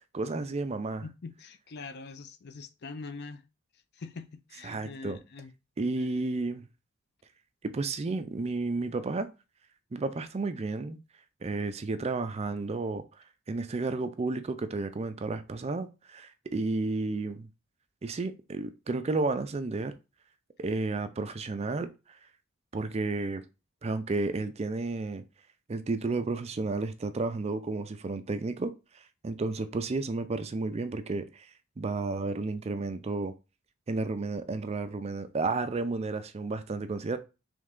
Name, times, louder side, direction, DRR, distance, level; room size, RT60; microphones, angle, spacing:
voice 1, 0.1-1.0 4.6-5.2 5.8-6.6 7.6-9.3 9.9-11.0 11.4-13.0 13.5-17.5 18.0-19.9 20.6-21.9 22.7-23.4 23.8-25.2 25.7-28.7 29.2-31.5 31.8-33.3 33.9-37.2, right 3 dB, 30° right, 0.4 m, -32 dB
voice 2, 1.0-3.4 3.9-5.5 6.0-6.1 16.5-16.6, left 4 dB, 55° left, 0.5 m, -43 dB
3.6 x 3.2 x 3.6 m
head